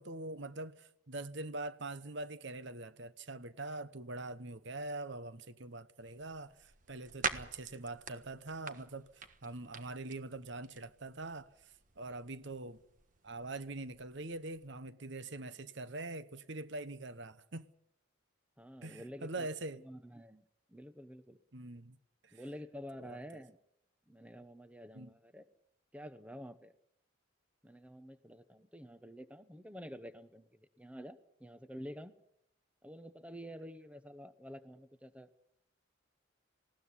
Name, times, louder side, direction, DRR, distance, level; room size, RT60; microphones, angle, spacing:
voice 1, 0.0-12.8 13.2-17.7 18.8-19.8 21.5-22.0 22.2-22.3 23.0-23.2 24.9-25.1, right 2 dB, 60° right, 1.0 m, -44 dB
sound 1, 6.0-14.7, right 5 dB, 40° right, 1.4 m, -46 dB
voice 2, 18.6-19.5 19.7-21.4 22.3-23.6 24.1-25.5 25.9-26.7 27.6-32.1 32.8-35.3, equal, 5° right, 0.9 m, -49 dB
20.0 x 17.0 x 10.0 m
head